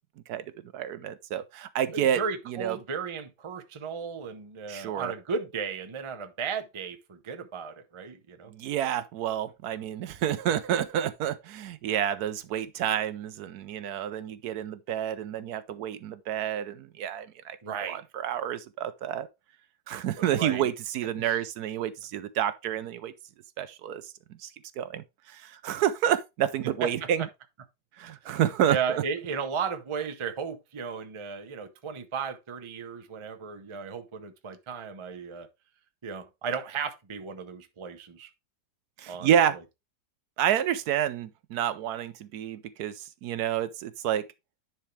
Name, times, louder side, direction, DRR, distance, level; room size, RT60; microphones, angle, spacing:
voice 1, 0.7-2.2 2.5-2.8 4.7-5.1 8.5-19.3 19.9-23.1 23.6-24.1 24.4-24.5 24.8-27.3 28.0-29.0 39.0-39.6 40.4-44.2, right 10 dB, 75° right, 1.1 m, -29 dB
voice 2, 1.9-8.5 17.6-18.0 20.2-20.7 21.2-21.4 26.6-26.9 28.7-35.5 36.0-38.3 39.1-39.3, right 6 dB, 30° right, 0.5 m, -35 dB
10.0 x 4.6 x 3.2 m
omnidirectional pair, 1.8 m